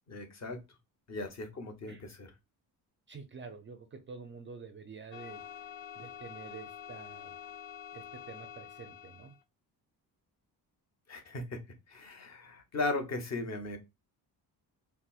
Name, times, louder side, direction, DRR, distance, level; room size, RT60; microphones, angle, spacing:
voice 1, 0.1-0.6 1.1-2.3 11.1-11.6 11.9-13.8, left 2 dB, 40° left, 0.8 m, -37 dB
voice 2, 3.1-5.4 6.0-7.3 7.9-9.3, right 5 dB, 30° right, 0.4 m, -48 dB
sound 1, 5.1-9.4, left 9 dB, 75° left, 0.6 m, -47 dB
4.0 x 2.0 x 2.3 m
cardioid pair, 125°, 41 cm